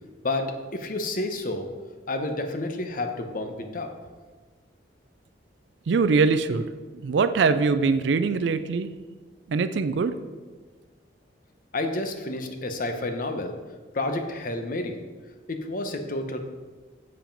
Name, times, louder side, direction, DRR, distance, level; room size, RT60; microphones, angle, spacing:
voice 1, 0.2-1.7 2.1-3.9 11.7-13.6 13.9-15.0 15.5-16.4, left 2 dB, 50° left, 6 dB, 0.8 m, -30 dB
voice 2, 5.9-6.7 7.0-8.9 9.5-10.1, right 4 dB, 70° right, 11 dB, 0.4 m, -22 dB
7.5 x 4.8 x 5.2 m, 1.4 s
head